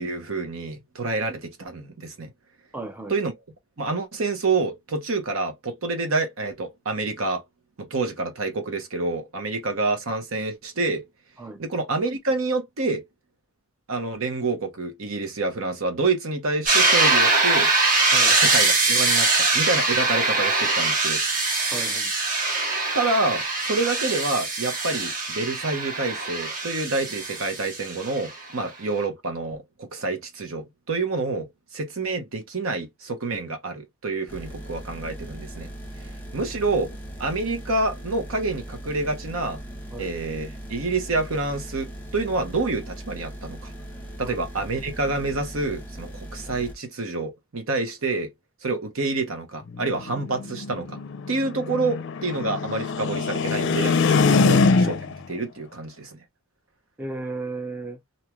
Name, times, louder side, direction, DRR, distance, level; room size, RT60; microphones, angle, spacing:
voice 1, 0.0-2.3 3.1-3.3 3.8-7.4 7.8-11.0 11.6-13.0 13.9-17.7 18.3-21.2 22.9-31.5 31.7-35.7 36.3-36.9 37.2-39.6 40.0-43.7 44.2-48.3 48.6-51.0 51.3-54.0 54.3-54.9 55.3-56.2, right 3 dB, 75° right, 0.9 m, -27 dB
voice 2, 2.7-3.1 11.4-11.6 18.1-18.3 21.7-22.1 36.4-36.5 39.9-40.1 44.2-44.4 54.4-54.5 57.0-58.0, right 2 dB, 10° right, 0.5 m, -34 dB
sound 1, 16.7-28.3, right 3 dB, 40° right, 1.1 m, -22 dB
sound 2, 34.3-46.7, right 1 dB, 10° left, 1.0 m, -39 dB
sound 3, 49.7-55.2, left 4 dB, 60° left, 0.5 m, -23 dB
3.1 x 2.7 x 2.2 m
head